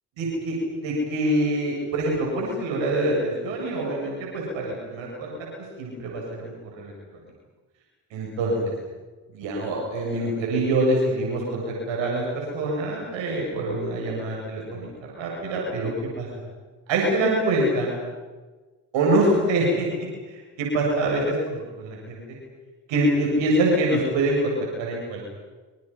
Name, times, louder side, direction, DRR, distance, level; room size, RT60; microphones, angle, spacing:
voice 1, 0.2-0.6 0.8-5.3 5.8-6.9 8.1-8.7 9.3-14.9 15.1-15.9 16.2-16.3 16.9-17.9 18.9-19.9 20.3-22.2 22.9-25.2, right 1 dB, 90° right, -2 dB, 7.6 m, -25 dB
29.5 x 28.0 x 5.8 m, 1.3 s
supercardioid pair, 45°, 44 cm